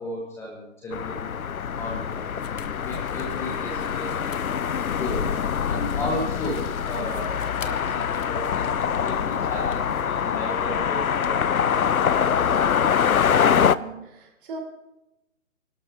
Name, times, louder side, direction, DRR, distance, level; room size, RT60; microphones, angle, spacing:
voice 1, 0.0-1.4 1.7-2.3 2.8-4.4 4.8-5.3 5.7-12.1, left 1 dB, 5° left, -3 dB, 1.2 m, -35 dB
sound 1, 0.9-13.8, left 7 dB, 80° left, 0.7 m, -24 dB
sound 2, 2.3-10.2, left 5 dB, 65° left, 1.2 m, -46 dB
voice 2, 13.4-14.6, right 3 dB, 40° right, -1 dB, 3.8 m, -40 dB
29.5 x 12.5 x 2.8 m, 0.96 s
figure-of-eight pair, 140°, 42 cm